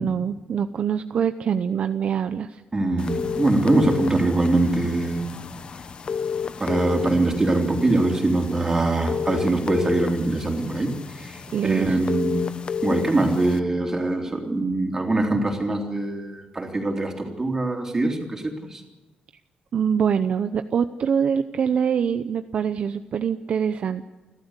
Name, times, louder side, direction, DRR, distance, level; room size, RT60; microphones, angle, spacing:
voice 1, 0.0-2.6 11.5-12.0 19.7-24.1, right 7 dB, 50° right, 9 dB, 0.8 m, -24 dB
voice 2, 2.7-5.2 6.6-12.5 12.8-18.8, right 2 dB, 20° right, 2 dB, 3.6 m, -23 dB
sound 1, 3.0-13.6, left 6 dB, 35° left, 0.9 m, -32 dB
29.5 x 13.0 x 8.3 m, 1.2 s
wide cardioid pair, 160°, 3 cm